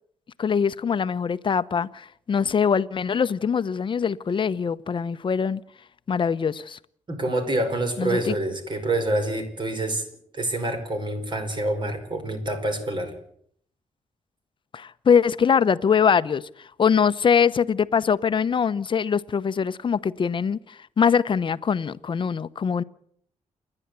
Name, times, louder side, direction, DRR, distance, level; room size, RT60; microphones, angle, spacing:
voice 1, 0.4-5.6 6.1-6.8 8.0-8.3 14.7-22.8, left 6 dB, 40° left, 0.8 m, -23 dB
voice 2, 7.1-10.1 10.3-13.1, right 1 dB, 40° right, 5.2 m, -27 dB
29.0 x 11.0 x 8.2 m
cardioid pair, 120°, 12 cm